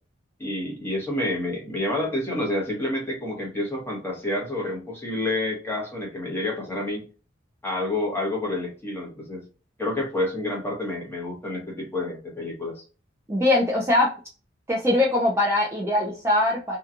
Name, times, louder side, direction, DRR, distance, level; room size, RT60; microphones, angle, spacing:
voice 1, 0.4-7.1 7.6-9.4 9.8-12.8, left 1 dB, 10° left, -3 dB, 0.9 m, -29 dB
voice 2, 13.3-14.1 14.7-16.8, left 1 dB, 15° right, -3 dB, 0.4 m, -22 dB
2.8 x 2.3 x 2.4 m, 0.35 s
head